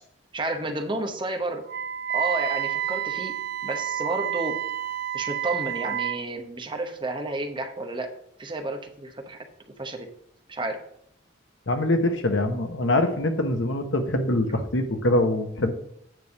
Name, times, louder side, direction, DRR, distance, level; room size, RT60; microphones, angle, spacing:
voice 1, 0.3-1.6 2.1-3.3 3.6-4.6 5.1-8.1 8.4-9.4 9.8-10.1 10.5-10.8, right 2 dB, 25° right, 5 dB, 0.9 m, -31 dB
Wind instrument woodwind instrument, 1.7-6.2, right 11 dB, 50° right, 0.6 m, -29 dB
voice 2, 11.7-15.7, left 1 dB, 75° left, 7 dB, 1.0 m, -24 dB
9.2 x 3.4 x 6.8 m, 0.71 s
head